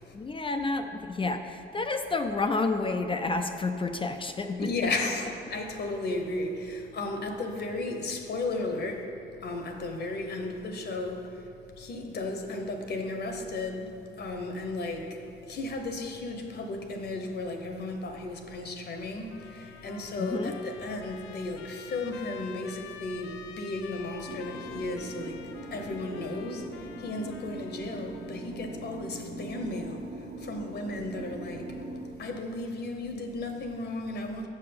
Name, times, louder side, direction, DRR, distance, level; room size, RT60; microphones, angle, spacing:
voice 1, 0.1-4.7 20.2-20.6, left 3 dB, 25° left, 6 dB, 0.4 m, -30 dB
voice 2, 4.6-9.0 9.4-11.3 11.8-13.9 14.2-15.2 15.5-25.4 25.7-30.1 30.4-31.7 32.2-34.5, left 2 dB, 55° left, 4 dB, 1.0 m, -34 dB
Trumpet, 19.3-28.4, left 9 dB, 80° left, 0.5 m, -48 dB
sound 1, 24.3-32.1, right 2 dB, 35° right, 1.0 m, -41 dB
6.5 x 5.7 x 6.9 m, 2.6 s
cardioid pair, 90°, 20 cm